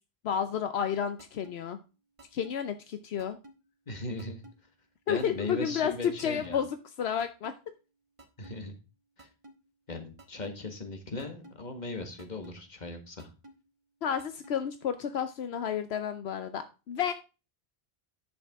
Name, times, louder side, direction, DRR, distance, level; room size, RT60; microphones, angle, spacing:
voice 1, 0.2-1.8 2.3-3.4 5.1-7.5 14.0-17.1, left 8 dB, 80° left, 10 dB, 1.0 m, -31 dB
sound 1, 1.2-1.5 2.2-2.5 3.2-3.5 4.2-4.5 5.2-5.5 6.2-6.5 7.2-7.5 8.2-8.5 9.2-9.5 10.2-10.5 11.2-11.5 12.2-12.5 13.2-13.5 14.2-14.5, right 1 dB, 30° right, 1.6 m, -51 dB
voice 2, 3.9-4.4 5.1-6.6 8.4-8.7 9.2-9.3 9.9-13.3, left 2 dB, 45° left, 6 dB, 1.7 m, -38 dB
10.0 x 6.7 x 3.6 m, 0.31 s
omnidirectional pair, 1.1 m